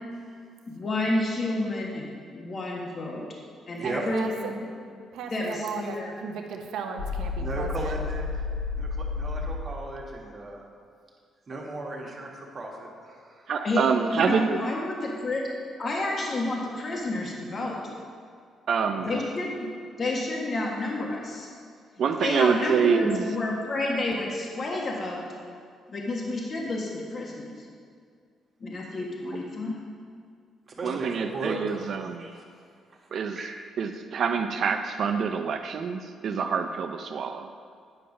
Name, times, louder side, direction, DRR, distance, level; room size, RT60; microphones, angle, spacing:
voice 1, 0.7-2.0 2.3-3.3 3.7-4.7 5.3-6.1 13.6-15.4 15.8-17.8 19.0-19.7 20.0-21.5 22.2-25.3 25.9-27.7 28.6-29.8, left 2 dB, 45° left, -2 dB, 1.4 m, -30 dB
voice 2, 3.8-4.5 5.1-8.0, right 5 dB, 85° right, 4 dB, 0.8 m, -36 dB
sound 1, 7.0-9.6, left 4 dB, 90° left, 1.4 m, -31 dB
voice 3, 7.4-8.4 8.7-10.6 11.5-13.5 19.0-19.2 22.5-22.6 30.7-32.5 33.4-33.6, right 2 dB, 40° right, -1 dB, 1.6 m, -36 dB
voice 4, 13.5-14.7 18.7-19.1 22.0-23.3 30.8-32.3 33.1-33.4 33.8-37.5, right 6 dB, 60° right, 7 dB, 0.5 m, -26 dB
9.2 x 5.5 x 5.3 m, 2.1 s
cardioid pair, 90°, 0 cm